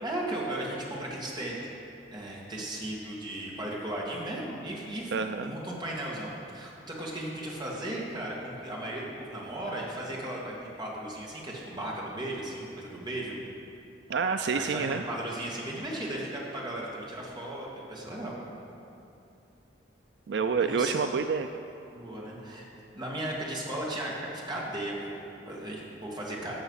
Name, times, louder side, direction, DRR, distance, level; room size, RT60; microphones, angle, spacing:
voice 1, 0.0-1.6 2.1-13.4 14.5-18.4 20.6-20.9 21.9-22.6 22.9-26.5, right 1 dB, 25° right, -4 dB, 2.1 m, -36 dB
voice 2, 5.1-5.5 14.1-15.0 20.3-21.5, right 5 dB, 70° right, 7 dB, 0.4 m, -28 dB
14.5 x 6.8 x 5.6 m, 2.7 s
head